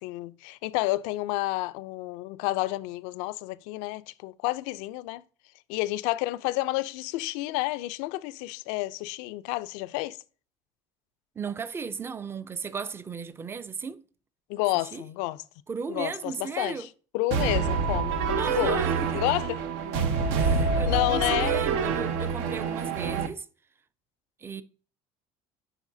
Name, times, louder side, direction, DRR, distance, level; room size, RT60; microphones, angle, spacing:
voice 1, 0.0-5.2 5.7-10.2 14.5-15.4 15.9-16.9 17.1-18.8 19.1-19.6 20.8-21.5, left 19 dB, 80° left, 0.4 m, -30 dB
voice 2, 11.4-14.0 14.9-15.0 15.7-16.9 18.4-19.2 20.4-23.5 24.4-24.6, right 5 dB, 20° right, 0.4 m, -36 dB
sound 1, 17.3-23.3, right 5 dB, 85° right, 0.9 m, -26 dB
9.9 x 4.6 x 2.6 m
cardioid pair, 135°, 12 cm